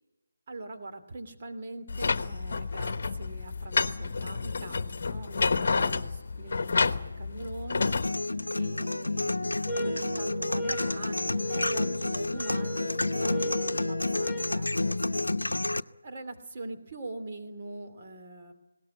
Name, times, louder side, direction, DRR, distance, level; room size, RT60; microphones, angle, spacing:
voice 1, 0.5-8.0 8.6-15.3 16.0-18.5, right 2 dB, 35° right, 4 dB, 2.9 m, -43 dB
sound 1, 1.9-8.1, left 4 dB, 50° left, 1.2 m, -29 dB
sound 2, 7.8-15.8, left 2 dB, 80° left, 0.8 m, -30 dB
sound 3, 9.7-14.6, equal, ahead, 1.3 m, -36 dB
20.0 x 17.5 x 9.7 m, 1.1 s
figure-of-eight pair, 155°, 0 cm